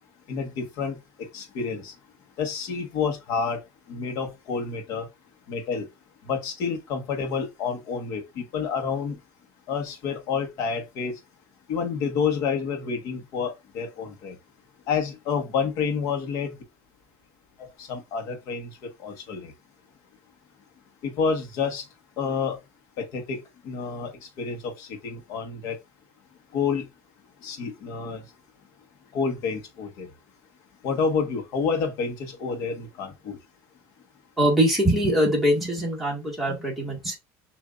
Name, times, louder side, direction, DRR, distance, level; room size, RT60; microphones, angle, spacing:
voice 1, 0.3-1.0 1.3-1.9 2.4-3.6 3.9-5.1 5.5-5.9 6.3-9.2 9.7-11.1 11.7-14.4 14.9-16.5 17.8-18.7 19.0-19.5 21.0-21.8 22.2-22.6 23.0-23.4 23.6-24.1 24.4-25.7 26.5-26.8 27.4-28.2 29.1-30.1 30.8-33.4, left 5 dB, 55° left, 1.4 m, -29 dB
voice 2, 34.4-37.2, equal, ahead, 2.1 m, -23 dB
6.6 x 2.8 x 2.5 m
cardioid pair, 140°, 7 cm